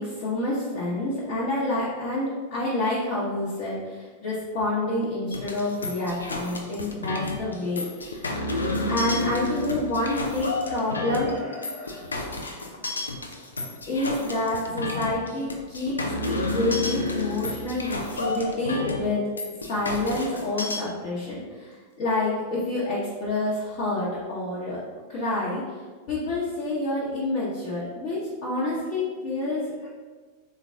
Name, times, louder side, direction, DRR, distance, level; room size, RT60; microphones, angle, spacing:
voice 1, 0.0-8.3 8.8-12.0 13.9-16.0 16.3-19.2 19.7-24.8 25.1-25.6 26.1-29.9, left 2 dB, 45° left, -8 dB, 1.0 m, -28 dB
sound 1, 5.3-20.8, left 2 dB, 75° left, 0.4 m, -31 dB
3.9 x 2.3 x 3.5 m, 1.4 s
figure-of-eight pair, 90°, 0 cm